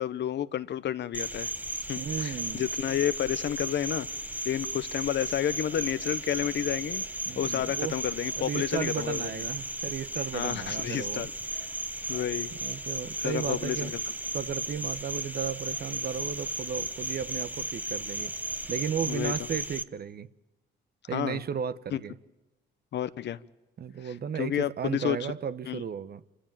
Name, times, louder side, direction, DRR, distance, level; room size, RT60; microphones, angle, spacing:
voice 1, 0.0-1.5 1.9-4.1 4.4-7.0 7.4-9.4 10.3-11.3 12.1-12.5 13.2-14.0 19.1-19.3 21.1-21.4 21.9-22.0 22.9-23.4 24.0-25.2 25.7-25.8, left 10 dB, 60° left, 0.9 m, -30 dB
Cricket, 1.1-19.8, right 2 dB, 10° right, 1.0 m, -35 dB
voice 2, 2.0-2.6 7.3-7.9 8.4-11.3 12.6-13.9 14.3-18.3 18.7-20.3 21.1-22.1 23.8-26.2, right 7 dB, 50° right, 1.0 m, -34 dB
27.5 x 15.5 x 9.0 m
cardioid pair, 90°, 20 cm